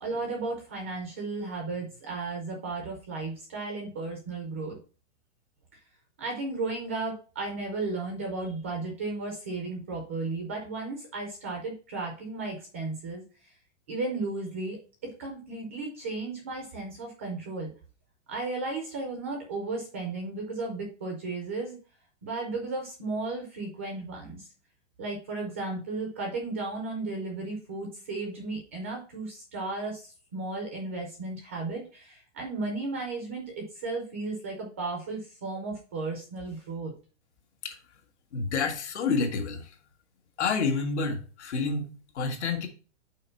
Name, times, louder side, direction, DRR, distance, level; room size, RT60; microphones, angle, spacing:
voice 1, 0.0-4.8 6.2-13.5 13.9-17.7 18.3-21.8 22.2-24.5 25.0-36.9, right 3 dB, 15° right, 2 dB, 0.3 m, -34 dB
voice 2, 38.3-39.7 40.4-42.7, left 4 dB, 75° left, 4 dB, 1.8 m, -29 dB
5.6 x 4.2 x 5.6 m, 0.36 s
supercardioid pair, 170°, 35 cm